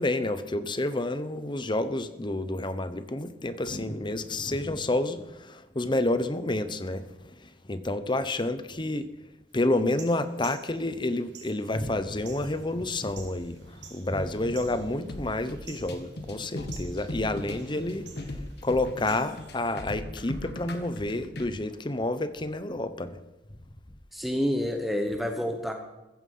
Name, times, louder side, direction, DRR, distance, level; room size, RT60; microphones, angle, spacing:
voice 1, 0.0-7.3 7.7-9.1 9.5-18.1 18.6-23.1, left 2 dB, 25° left, 12 dB, 1.0 m, -29 dB
sound 1, 9.8-19.8, right 6 dB, 70° right, 4.1 m, -52 dB
sound 2, 15.1-21.5, left 1 dB, 65° left, 1.9 m, -38 dB
voice 2, 24.1-25.7, equal, ahead, 4 dB, 1.2 m, -28 dB
15.0 x 15.0 x 5.6 m, 1.0 s
head